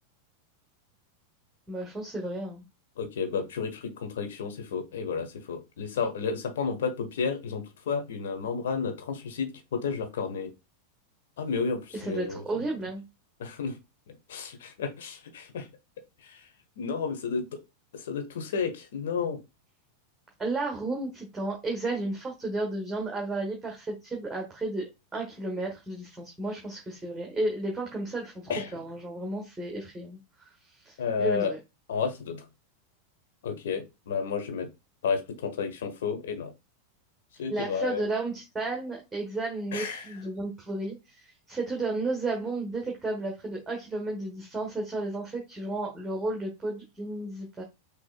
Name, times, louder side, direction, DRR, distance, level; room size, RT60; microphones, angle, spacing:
voice 1, 1.7-2.6 11.9-13.0 20.4-30.5 30.7-31.6 37.5-47.6, right 2 dB, 10° right, 0 dB, 1.3 m, -33 dB
voice 2, 3.0-10.5 11.4-12.8 13.4-13.8 14.1-15.7 16.2-16.5 16.8-17.6 17.9-19.4 28.5-28.7 31.0-31.5 31.9-32.4 33.4-34.7 35.0-36.5 37.4-38.0 39.7-40.1, left 5 dB, 60° left, 6 dB, 1.2 m, -32 dB
6.2 x 3.3 x 2.3 m, 0.24 s
figure-of-eight pair, 90°, 0 cm